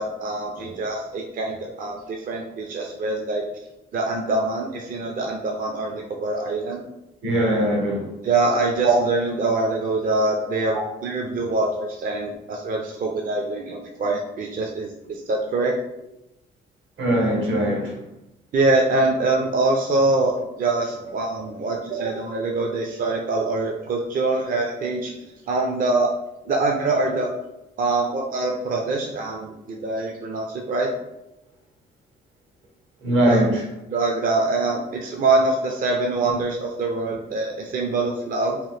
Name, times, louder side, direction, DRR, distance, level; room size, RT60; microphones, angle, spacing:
voice 1, 0.0-3.4 3.9-6.8 8.2-15.7 18.5-26.2 26.5-27.3 27.8-30.9 33.3-33.4 33.9-38.6, right 2 dB, 45° right, 1 dB, 0.4 m, -24 dB
voice 2, 7.2-8.1 8.8-8.9 17.0-18.0 21.9-22.1 33.0-33.6, right 1 dB, 70° right, 1 dB, 0.9 m, -21 dB
2.9 x 2.0 x 3.2 m, 0.90 s
cardioid pair, 90°, 20 cm